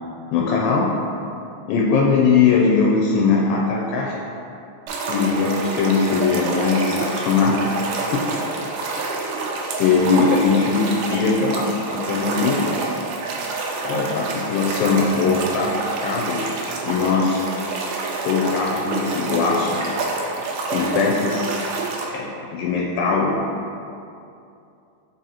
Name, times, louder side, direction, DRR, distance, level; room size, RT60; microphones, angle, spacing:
voice 1, 0.3-0.9 1.7-4.2 5.1-7.6 8.1-8.2 9.8-12.6 13.8-16.6 16.8-17.4 18.2-19.9 20.7-21.5 22.1-22.3 22.5-23.4, left 5 dB, 90° left, -2 dB, 2.3 m, -20 dB
sound 1, 4.9-22.0, right 3 dB, 80° right, 1.7 m, -27 dB
4.8 x 3.9 x 2.8 m, 2.6 s
omnidirectional pair, 3.9 m